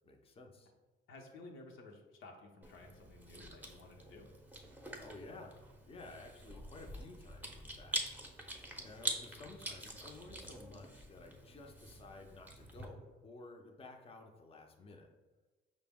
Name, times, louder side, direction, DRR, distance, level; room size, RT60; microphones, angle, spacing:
voice 1, 0.0-0.7 5.0-8.0 8.3-15.1, left 2 dB, 30° left, 2 dB, 0.5 m, -54 dB
voice 2, 1.1-4.3, left 2 dB, 80° left, 2 dB, 0.7 m, -54 dB
Chewing mastication, 2.6-12.9, right 1 dB, 10° right, 0.6 m, -45 dB
5.0 x 2.0 x 3.5 m, 1.3 s
cardioid pair, 90°, 20 cm